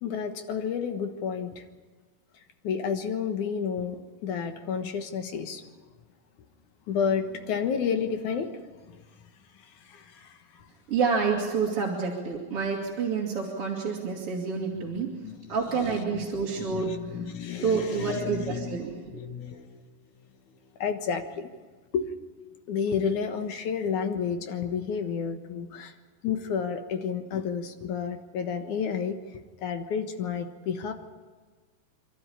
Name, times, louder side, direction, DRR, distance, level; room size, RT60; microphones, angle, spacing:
voice 1, 0.0-1.6 2.6-5.6 6.9-8.9 9.5-10.7 14.7-15.5 15.9-16.3 16.6-18.8 19.1-19.8 20.8-21.5 21.9-22.1 22.7-25.9 26.2-30.9, left 6 dB, 65° left, 6 dB, 2.6 m, -31 dB
voice 2, 10.9-15.1 15.5-17.2 17.6-19.2, right 5 dB, 45° right, -2 dB, 2.9 m, -28 dB
27.5 x 13.0 x 10.0 m, 1.4 s
omnidirectional pair, 4.2 m